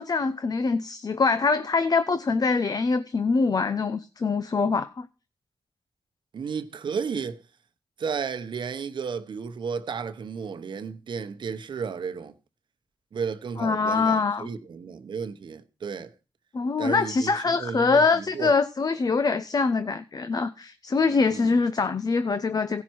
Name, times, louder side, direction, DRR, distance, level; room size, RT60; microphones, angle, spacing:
voice 1, 0.0-5.1 13.6-14.5 16.5-22.8, left 4 dB, 55° left, 0.7 m, -24 dB
voice 2, 6.3-7.4 8.0-12.3 13.1-16.1 16.8-18.5 21.2-21.6, right 6 dB, 75° right, 1.0 m, -33 dB
16.0 x 5.8 x 4.6 m
cardioid pair, 50°, 8 cm